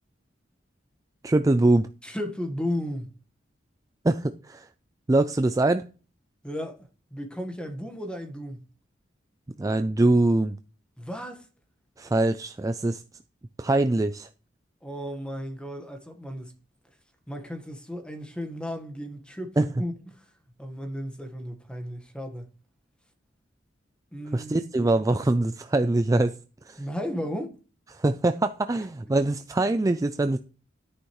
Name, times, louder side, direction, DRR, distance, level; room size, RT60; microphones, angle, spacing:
voice 1, 1.2-1.9 4.0-4.7 5.1-5.8 9.6-10.6 12.0-13.0 13.6-14.3 19.6-19.7 24.3-26.3 26.6-26.8 27.9-30.4, right 2 dB, 20° right, 0.4 m, -23 dB
voice 2, 2.0-3.1 6.4-8.6 11.0-11.5 14.8-16.5 17.3-20.2 20.6-22.5 24.1-24.7 26.8-27.5 29.1-29.2, equal, 5° left, 1.4 m, -34 dB
11.5 x 9.9 x 3.1 m
head